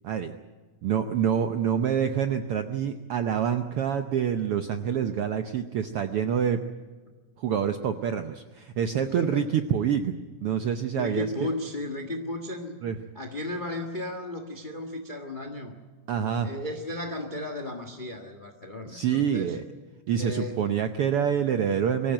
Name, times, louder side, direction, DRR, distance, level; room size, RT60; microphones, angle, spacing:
voice 1, 0.8-6.6 7.4-10.1 10.4-11.5 12.8-13.0 16.1-16.5 18.9-19.6 20.1-22.1, right 8 dB, 85° right, 8 dB, 1.2 m, -26 dB
voice 2, 9.0-9.5 10.9-12.8 13.1-15.7 16.4-19.6 20.2-20.6, left 1 dB, 35° left, 5 dB, 0.8 m, -34 dB
24.0 x 15.5 x 9.0 m, 1.4 s
omnidirectional pair, 3.7 m